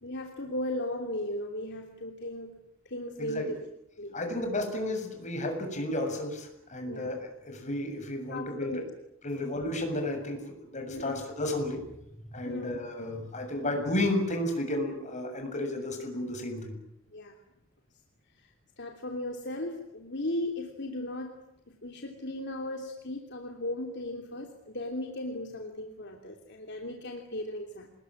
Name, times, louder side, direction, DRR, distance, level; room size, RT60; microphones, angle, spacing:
voice 1, 0.0-2.6 2.8-3.6 4.0-4.2 6.8-7.1 8.3-8.8 10.9-11.2 12.4-12.8 17.1-17.3 18.4-18.5 18.8-27.9, left 1 dB, 60° left, 3 dB, 3.1 m, -36 dB
voice 2, 3.2-3.5 4.1-8.8 9.2-11.8 12.3-16.8, left 1 dB, 35° left, 4 dB, 7.3 m, -32 dB
27.0 x 21.0 x 9.8 m, 0.80 s
head